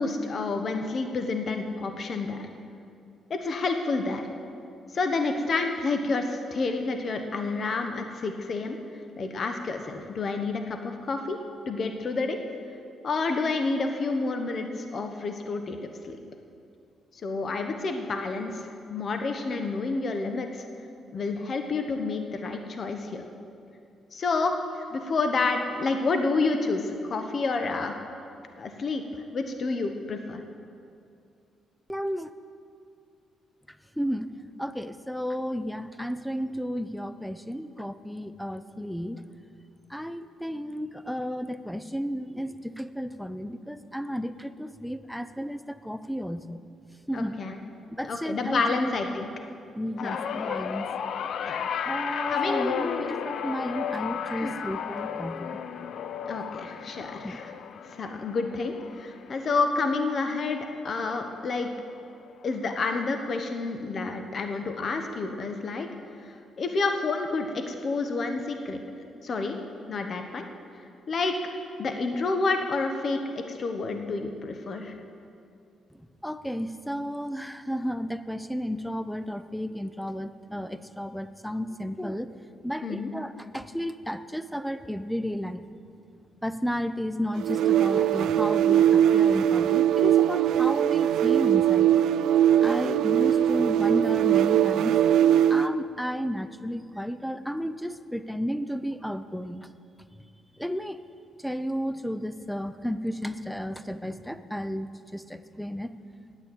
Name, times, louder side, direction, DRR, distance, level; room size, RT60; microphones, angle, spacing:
voice 1, 0.0-2.5 3.3-4.2 4.9-11.4 11.7-12.4 13.0-16.2 17.2-20.7 21.1-23.2 24.1-24.5 24.9-27.9 28.6-29.0 29.3-30.4 47.1-47.6 48.0-49.3 50.0-50.2 51.4-51.6 52.3-53.0 54.4-54.5 56.3-57.5 57.9-61.7 62.4-65.9 66.2-68.8 69.2-69.6 69.9-70.5 71.1-71.4 71.8-74.9 82.8-83.1, left 3 dB, 50° left, 6 dB, 1.0 m, -29 dB
voice 2, 31.9-32.3 34.0-34.3 34.6-39.2 39.9-46.6 47.1-47.4 48.0-49.2 49.8-50.9 51.8-55.6 57.2-57.4 76.2-82.3 82.6-85.6 86.4-91.9 92.6-95.0 95.5-99.7 100.6-101.0 101.4-105.9, equal, ahead, 12 dB, 0.5 m, -33 dB
sound 1, 50.0-60.4 60.8-61.2 62.3-62.4, left 8 dB, 65° left, 0.5 m, -33 dB
sound 2, 87.4-95.8, right 10 dB, 80° right, 0.3 m, -21 dB
9.8 x 7.9 x 8.7 m, 2.4 s
cardioid pair, 90°, 0 cm